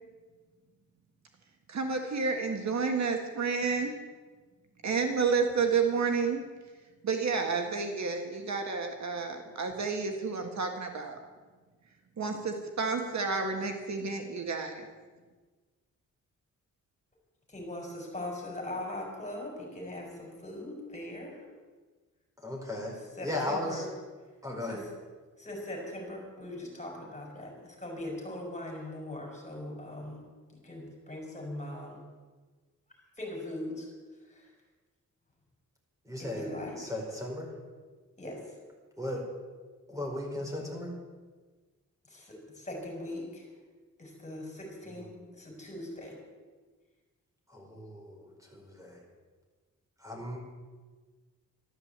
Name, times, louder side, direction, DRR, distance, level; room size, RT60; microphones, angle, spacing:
voice 1, 1.7-4.0 4.8-6.4 7.0-11.2 12.2-14.9, right 5 dB, 60° right, 4 dB, 1.7 m, -30 dB
voice 2, 17.5-21.4 23.2-23.8 24.6-24.8 25.4-30.2 30.5-32.0 33.2-33.9 34.3-34.5 36.2-36.8 38.2-38.5 42.1-43.5 44.0-46.2, left 1 dB, 20° left, 0 dB, 5.1 m, -40 dB
voice 3, 22.4-23.9 24.4-24.8 36.0-37.5 39.0-39.2 39.9-40.9 44.8-45.3 47.5-49.0 50.0-50.4, left 1 dB, 10° right, -1 dB, 4.8 m, -37 dB
13.0 x 12.5 x 8.1 m, 1.4 s
wide cardioid pair, 130°, 32 cm